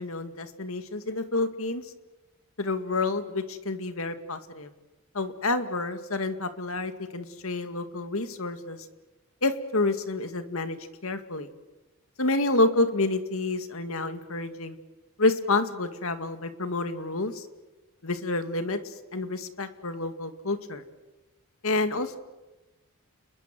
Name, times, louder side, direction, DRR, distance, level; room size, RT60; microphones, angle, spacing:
voice 1, 0.0-1.8 2.6-4.7 5.1-8.8 9.4-10.8 11.0-11.5 12.2-14.8 15.2-17.4 18.0-18.8 19.1-20.8 21.6-22.2, left 2 dB, 70° left, 9 dB, 2.2 m, -28 dB
29.5 x 21.5 x 7.8 m, 1.1 s
head